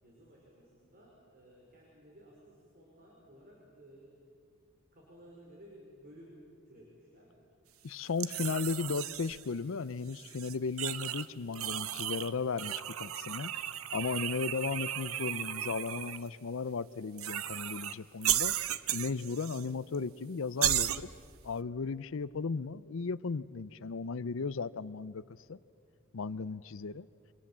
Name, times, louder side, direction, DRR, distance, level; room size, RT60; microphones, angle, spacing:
voice 1, 0.0-4.2 4.9-6.4 6.7-7.3, equal, 45° right, -2 dB, 5.1 m, -56 dB
voice 2, 7.8-13.5 13.9-18.5 18.9-21.1 21.4-25.6 26.1-27.1, left 4 dB, 65° left, 17 dB, 0.5 m, -35 dB
sound 1, 8.2-9.5 10.1-11.3 11.5-12.3 12.6-16.2 17.2-17.9 18.2-19.7 19.9-20.0 20.6-21.0, right 12 dB, 90° right, 0.9 m, -34 dB
29.0 x 25.0 x 7.4 m, 2.3 s
head